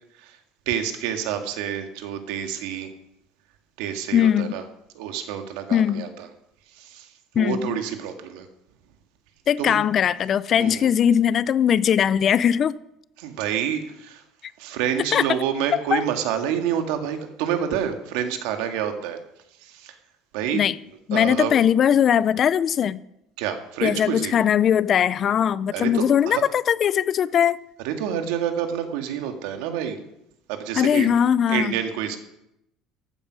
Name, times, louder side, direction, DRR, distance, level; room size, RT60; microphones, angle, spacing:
voice 1, 0.7-2.9 3.8-4.6 4.9-6.3 6.7-8.5 9.6-9.8 10.6-10.9 13.2-14.2 14.6-19.2 19.6-20.0 20.3-20.6 21.1-21.5 23.4-24.3 25.7-26.4 27.8-30.0 30.5-31.1 31.5-32.2, right 9 dB, 80° right, 2.0 m, -28 dB
voice 2, 4.1-4.6 5.7-6.1 7.4-7.8 9.5-12.8 15.1-15.3 15.7-16.0 20.5-20.8 21.1-23.0 23.8-27.6 30.7-31.7, left 9 dB, 35° left, 0.4 m, -20 dB
14.5 x 8.8 x 6.3 m
cardioid pair, 150°, 0 cm